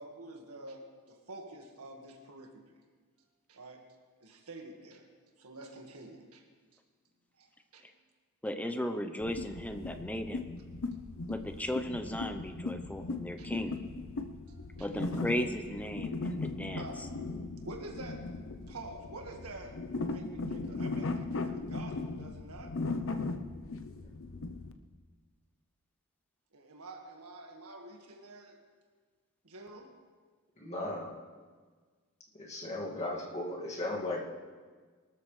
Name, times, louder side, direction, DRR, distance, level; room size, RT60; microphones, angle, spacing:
voice 1, 0.0-2.8 3.5-3.8 4.2-5.1 5.4-6.4 7.4-7.8 8.5-8.6 10.8-10.9 13.4-13.5 14.5-15.2 16.8-17.0 17.6-19.8 20.1-22.8 26.5-28.6 29.4-30.0, right 2 dB, 90° right, 2 dB, 1.7 m, -48 dB
voice 2, 8.4-10.5 11.3-13.8 14.8-16.8, left 1 dB, 5° left, 7 dB, 0.7 m, -36 dB
sound 1, 9.2-24.7, left 3 dB, 65° left, 0.7 m, -38 dB
voice 3, 30.6-31.1 32.3-34.2, left 1 dB, 30° left, -3 dB, 2.1 m, -36 dB
23.0 x 13.0 x 3.3 m, 1.5 s
head